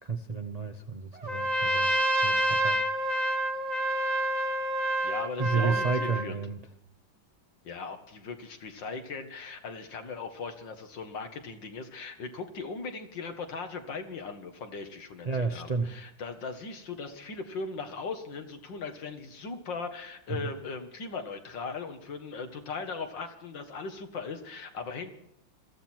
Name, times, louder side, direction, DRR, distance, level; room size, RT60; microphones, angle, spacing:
voice 1, 0.0-1.9 2.2-3.2 5.4-6.6 15.3-16.0 20.3-20.5, right 4 dB, 40° right, 6 dB, 0.5 m, -32 dB
Trumpet, 1.2-6.3, right 1 dB, 25° right, 1.3 m, -28 dB
voice 2, 5.0-6.4 7.6-25.2, left 4 dB, 75° left, 6 dB, 2.4 m, -38 dB
22.0 x 14.5 x 4.5 m, 0.78 s
omnidirectional pair, 2.0 m